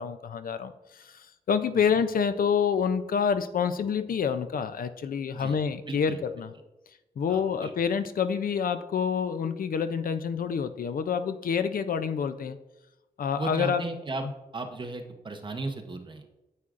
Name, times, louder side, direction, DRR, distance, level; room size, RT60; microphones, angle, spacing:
voice 1, 0.0-6.5 7.2-12.6 13.2-13.8, left 6 dB, 65° left, 11 dB, 0.4 m, -27 dB
voice 2, 5.9-6.2 7.3-7.7 13.4-14.2 14.5-16.3, right 2 dB, 30° right, 5 dB, 0.8 m, -35 dB
9.5 x 7.9 x 2.5 m, 1.0 s
wide cardioid pair, 160°, 16 cm